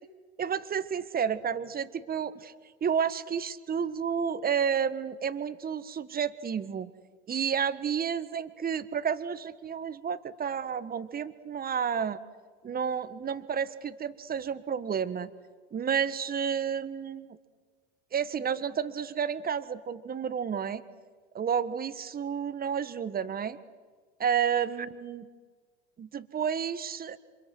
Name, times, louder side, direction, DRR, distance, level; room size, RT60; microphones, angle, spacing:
voice 1, 0.4-2.5 2.8-6.9 7.3-12.2 12.6-15.3 15.7-17.4 18.1-20.8 21.3-23.6 24.2-25.3 26.0-27.2, right 7 dB, 25° right, 14 dB, 1.5 m, -31 dB
28.5 x 26.5 x 6.4 m, 1.5 s
hypercardioid pair, 80°, 32 cm